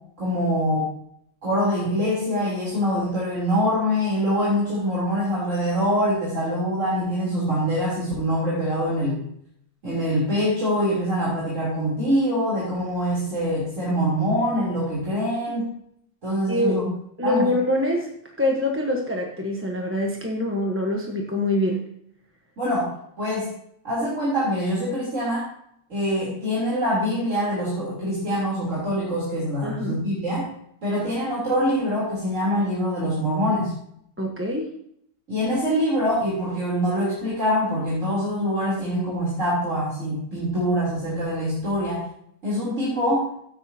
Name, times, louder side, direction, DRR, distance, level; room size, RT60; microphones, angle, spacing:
voice 1, 0.2-0.9 1.4-9.2 9.8-15.7 16.2-16.9 17.2-17.5 22.6-23.5 23.8-25.5 25.9-30.5 30.8-33.7 35.3-42.1 42.4-43.3, equal, 75° right, -8 dB, 4.1 m, -24 dB
voice 2, 16.5-16.8 17.2-21.8 29.6-30.0 34.2-34.7, left 1 dB, 10° right, 0 dB, 1.2 m, -25 dB
14.0 x 9.4 x 2.9 m, 0.70 s
omnidirectional pair, 1.3 m